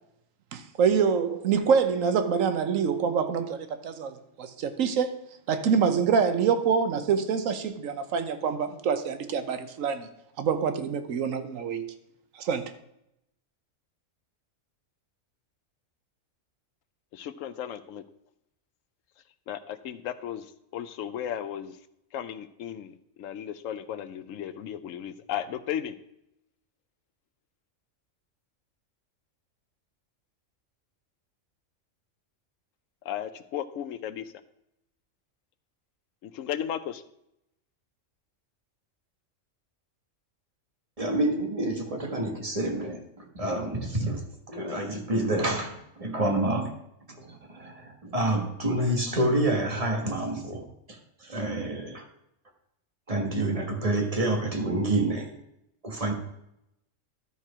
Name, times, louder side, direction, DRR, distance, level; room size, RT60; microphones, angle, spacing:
voice 1, 0.5-5.2 5.5-10.1 10.4-11.9 12.4-12.7, right 6 dB, 80° right, 1.2 m, -26 dB
voice 2, 17.1-18.0 19.5-20.5 20.7-21.7 22.1-26.0 33.1-34.2 36.2-37.0, left 10 dB, 80° left, 1.0 m, -35 dB
voice 3, 41.0-46.7 47.1-52.0 53.1-55.3 55.8-56.1, right 1 dB, 30° right, 1.4 m, -28 dB
13.0 x 4.5 x 4.9 m
omnidirectional pair, 1.3 m